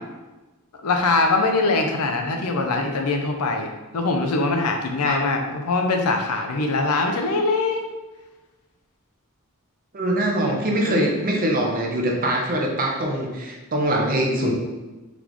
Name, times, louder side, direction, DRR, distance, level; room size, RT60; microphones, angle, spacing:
voice 1, 0.8-7.8 10.4-10.6 10.9-11.1, left 3 dB, 80° left, 4 dB, 0.6 m, -22 dB
voice 2, 9.9-14.5, right 1 dB, 40° right, 0 dB, 0.7 m, -23 dB
4.0 x 3.5 x 3.0 m, 1.2 s
head